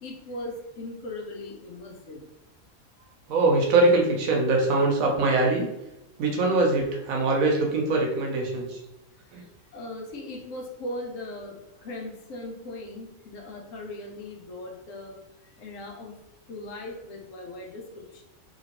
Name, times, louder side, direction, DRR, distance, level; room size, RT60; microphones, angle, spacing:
voice 1, 0.0-2.2 9.7-15.2 15.6-16.2 16.5-18.2, left 1 dB, 70° left, 1 dB, 1.0 m, -39 dB
voice 2, 3.3-5.7 6.2-8.8 9.3-9.4, right 2 dB, 75° right, 0 dB, 1.1 m, -22 dB
2.9 x 2.8 x 2.9 m, 0.93 s
omnidirectional pair, 1.4 m